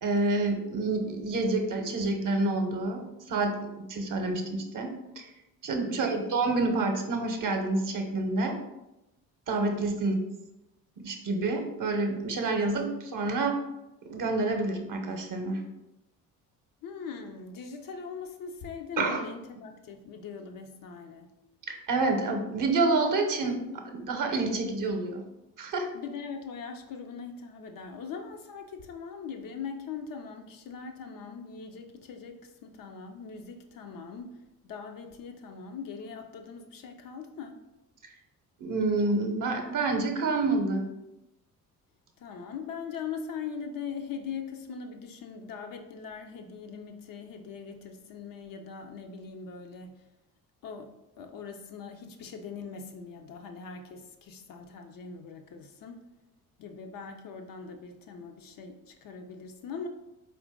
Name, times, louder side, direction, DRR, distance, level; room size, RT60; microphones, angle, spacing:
voice 1, 0.0-3.6 3.9-5.3 5.6-8.6 9.5-10.2 11.0-13.6 14.1-15.6 19.0-19.2 21.7-23.6 23.9-25.2 25.6-25.9 38.6-40.8, right 3 dB, 45° right, 4 dB, 0.9 m, -28 dB
voice 2, 5.8-6.2 9.9-10.0 16.8-21.3 25.9-37.6 42.2-50.0 50.6-56.0 56.6-59.9, left 6 dB, 45° left, 4 dB, 0.6 m, -41 dB
4.3 x 2.6 x 3.6 m, 0.93 s
hypercardioid pair, 50°, 45 cm